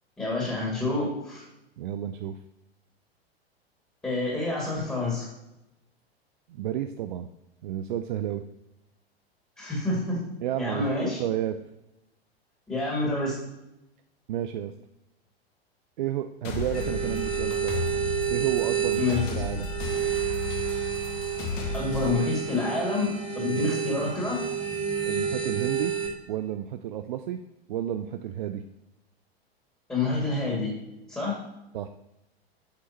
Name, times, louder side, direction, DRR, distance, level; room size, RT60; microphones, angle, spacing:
voice 1, 0.2-1.4 4.0-5.3 9.6-10.2 10.6-11.2 12.7-13.4 19.0-19.2 21.7-24.4 29.9-30.7 31.1-31.4, left 3 dB, 10° left, -5 dB, 2.3 m, -28 dB
voice 2, 1.8-2.4 6.5-7.3 7.6-8.4 10.4-11.6 14.3-14.7 16.0-17.8 18.3-19.0 19.3-19.7 23.4-23.7 25.0-26.0 26.3-27.4 27.7-28.6 31.7-31.9, right 11 dB, 50° right, 9 dB, 0.4 m, -31 dB
sound 1, 16.4-22.1, left 3 dB, 40° left, 1.3 m, -34 dB
sound 2, 16.7-26.1, right 8 dB, 85° left, 2.5 m, -30 dB
8.2 x 6.3 x 2.9 m, 0.91 s
figure-of-eight pair, 90°, 32 cm